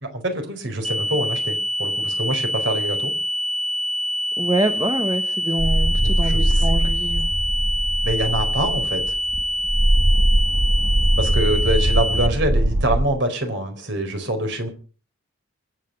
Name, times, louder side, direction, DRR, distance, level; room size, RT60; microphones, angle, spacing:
voice 1, 0.0-3.1 6.0-6.8 8.0-9.1 11.2-14.7, right 1 dB, 55° right, 6 dB, 4.3 m, -25 dB
sound 1, 0.8-12.3, equal, ahead, 0.8 m, -25 dB
voice 2, 4.4-7.2, right 1 dB, 15° right, 6 dB, 1.3 m, -25 dB
sound 2, 5.6-13.1, right 1 dB, 80° right, 1.4 m, -21 dB
25.0 x 9.2 x 5.5 m, 0.40 s
head